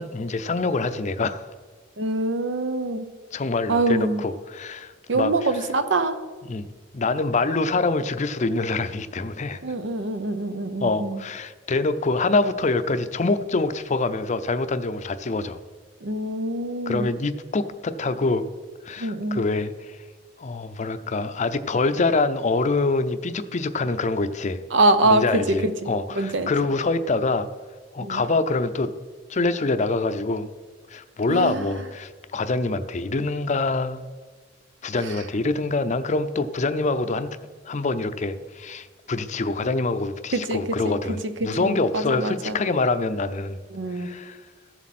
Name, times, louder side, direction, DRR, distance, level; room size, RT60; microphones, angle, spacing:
voice 1, 0.0-1.5 3.3-5.7 6.5-6.7 6.9-9.6 10.8-15.6 16.9-18.5 18.8-20.0 20.4-24.6 25.0-27.5 27.9-28.9 29.3-30.5 30.9-34.0 34.8-37.3 37.7-43.6 43.9-44.4, left 3 dB, 40° left, 11 dB, 0.6 m, -25 dB
voice 2, 2.0-3.0 3.7-4.2 5.1-6.2 9.6-11.2 16.0-17.1 19.0-19.4 24.7-26.5 28.0-28.2 31.3-31.6 40.3-42.5 43.7-44.1, right 2 dB, 75° right, 10 dB, 0.8 m, -24 dB
14.5 x 7.3 x 4.3 m, 1.4 s
head